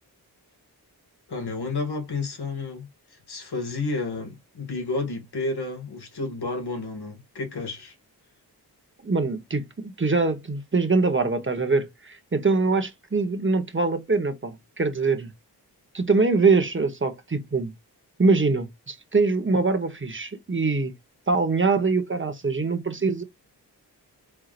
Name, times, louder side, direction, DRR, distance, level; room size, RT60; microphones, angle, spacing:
voice 1, 1.3-7.9, left 3 dB, 75° left, 2.1 m, -31 dB
voice 2, 9.0-15.3 15.9-17.7 18.2-20.9 21.3-23.2, right 3 dB, 30° right, 1.3 m, -23 dB
4.7 x 3.7 x 2.5 m
cardioid pair, 60°, 39 cm